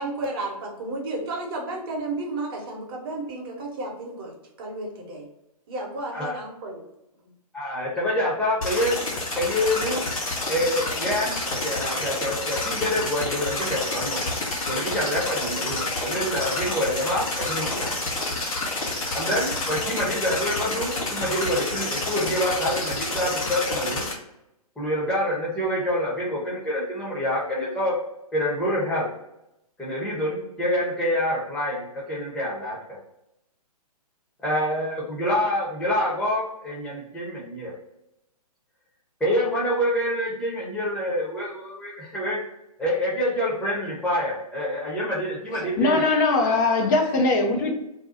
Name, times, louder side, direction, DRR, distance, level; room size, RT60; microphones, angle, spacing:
voice 1, 0.0-5.3 5.7-6.8, right 2 dB, 35° right, 1.0 m, -32 dB
voice 2, 7.5-9.0 9.3-10.0 10.4-14.2 14.7-17.9 19.1-24.1 24.8-28.0 28.3-29.1 29.8-32.8 34.4-37.7 39.2-42.4 42.8-46.0, left 1 dB, 5° left, 0.9 m, -26 dB
sound 1, 8.6-24.1, left 2 dB, 60° left, 0.9 m, -29 dB
voice 3, 45.6-47.7, left 3 dB, 30° left, 0.5 m, -21 dB
2.7 x 2.2 x 3.9 m
figure-of-eight pair, 125°, 20 cm